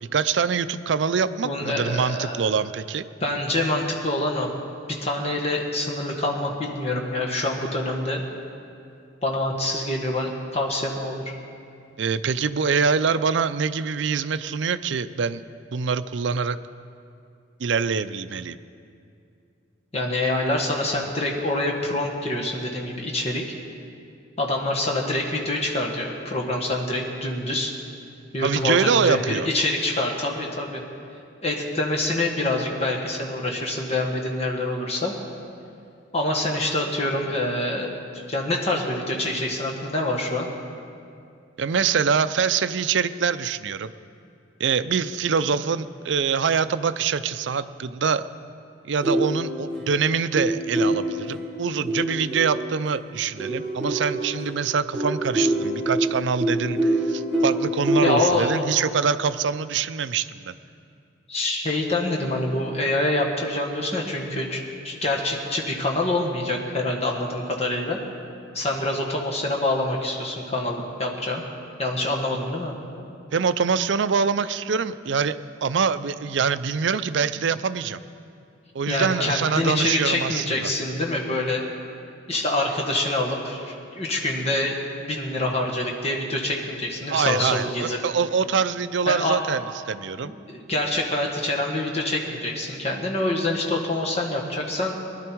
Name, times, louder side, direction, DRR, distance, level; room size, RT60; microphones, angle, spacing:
voice 1, 0.0-3.0 12.0-15.4 15.7-16.6 17.6-18.6 28.4-29.5 41.6-43.9 44.6-48.3 48.8-60.6 73.3-78.0 78.7-80.7 87.1-89.6 89.9-90.3, right 6 dB, 65° right, 13 dB, 0.5 m, -24 dB
voice 2, 1.4-2.4 3.2-4.5 4.9-8.2 9.2-11.3 19.9-23.4 24.4-27.7 28.3-30.8 31.4-35.1 36.1-40.5 58.0-58.5 61.3-68.0 68.5-71.4 71.8-72.7 78.9-81.6 82.3-88.0 89.1-89.4 90.2-95.0, left 1 dB, 35° left, 0 dB, 1.6 m, -26 dB
sound 1, 49.0-52.9 53.4-58.2, right 1 dB, 5° left, 3.8 m, -26 dB
20.0 x 11.5 x 4.6 m, 2.5 s
head